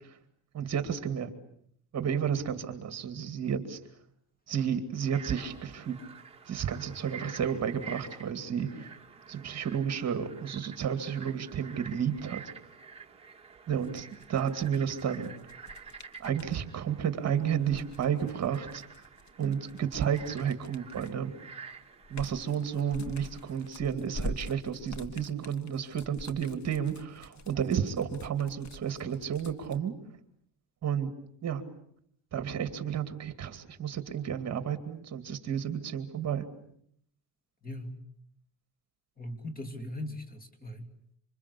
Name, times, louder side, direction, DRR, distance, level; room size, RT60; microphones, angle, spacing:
voice 1, 0.5-1.3 1.9-3.8 4.5-6.0 6.5-8.9 9.3-12.4 13.7-15.3 16.2-18.8 19.4-21.3 22.1-29.9 30.8-31.1 31.4-31.6 32.3-36.4, right 8 dB, 40° right, 9 dB, 2.4 m, -32 dB
Frog, 4.9-23.7, right 5 dB, 15° right, 2.5 m, -49 dB
sound 1, 13.8-16.6 17.5-21.3 21.7-29.8, left 1 dB, 45° left, 1.8 m, -45 dB
voice 2, 37.6-38.0 39.2-40.9, left 1 dB, 20° left, 8 dB, 2.9 m, -39 dB
27.0 x 26.0 x 8.4 m, 0.70 s
cardioid pair, 155°, 41 cm